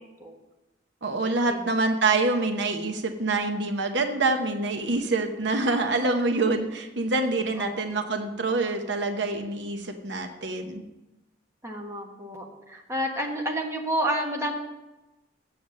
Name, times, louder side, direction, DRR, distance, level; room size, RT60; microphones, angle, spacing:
voice 1, 1.0-10.8, right 3 dB, 70° right, 6 dB, 0.9 m, -26 dB
voice 2, 11.6-14.5, equal, 15° right, 0 dB, 1.4 m, -30 dB
7.7 x 7.4 x 7.5 m, 1.0 s
head